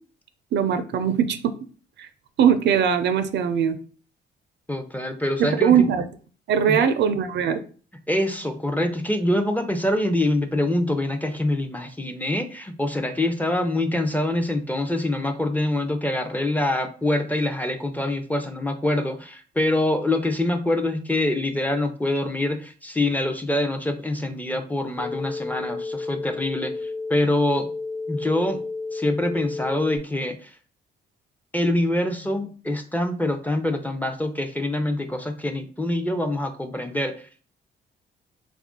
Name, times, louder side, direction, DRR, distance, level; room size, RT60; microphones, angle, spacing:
voice 1, 0.5-1.5 2.4-3.8 5.4-6.0 6.5-7.6, right 8 dB, 60° right, 10 dB, 0.5 m, -20 dB
voice 2, 4.7-5.9 6.7-6.9 8.1-27.7 28.1-28.6 28.9-30.6 31.5-37.4, left 1 dB, 10° left, 7 dB, 0.5 m, -25 dB
sound 1, 25.0-30.0, left 3 dB, 80° left, 0.7 m, -32 dB
3.4 x 2.4 x 3.6 m, 0.41 s
cardioid pair, 90°, 20 cm